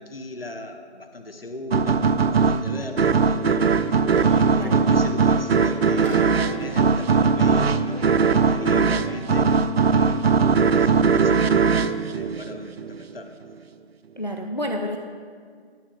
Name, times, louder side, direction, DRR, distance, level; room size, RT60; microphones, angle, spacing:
voice 1, 0.0-3.7 4.3-9.6 9.9-13.3, left 2 dB, 60° left, 6 dB, 0.9 m, -38 dB
sound 1, 1.7-13.0, right 5 dB, 65° right, 0.4 m, -20 dB
sound 2, 2.0-8.3, equal, 10° left, 2.1 m, -41 dB
sound 3, 3.5-11.0, left 1 dB, 90° right, 2.7 m, -43 dB
voice 2, 14.2-15.0, left 1 dB, 45° left, 4 dB, 0.4 m, -29 dB
12.5 x 5.0 x 5.4 m, 2.1 s
figure-of-eight pair, 170°, 33 cm